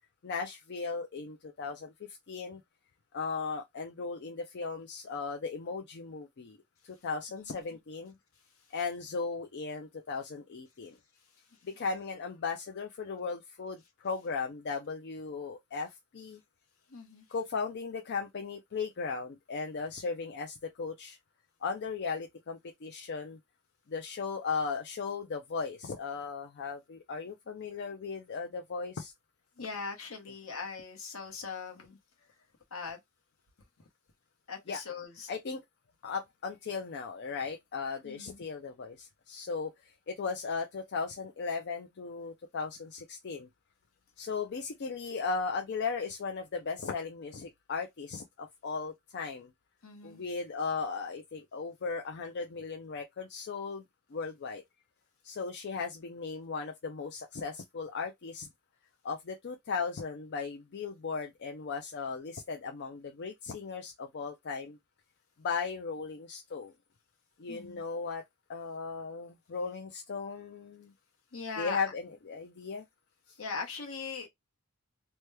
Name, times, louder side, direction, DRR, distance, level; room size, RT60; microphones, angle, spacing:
voice 1, 0.2-1.9 2.3-2.6 3.1-6.6 6.8-8.1 8.7-11.0 11.6-16.4 17.3-21.2 21.6-23.4 23.9-29.1 34.7-34.8 35.3-35.6 36.0-43.5 44.2-49.5 50.0-53.8 54.1-54.6 55.2-58.5 59.0-64.8 65.4-66.7 67.4-68.2 68.5-70.9 71.6-72.8 73.3-73.4, left 4 dB, 50° left, 0.4 m, -37 dB
voice 2, 16.9-17.3 29.6-32.0 32.7-33.0 34.5-35.3 38.0-38.4 49.8-50.2 67.5-67.8 71.3-71.8 73.4-74.3, left 5 dB, 65° left, 1.1 m, -40 dB
3.0 x 2.2 x 3.2 m
head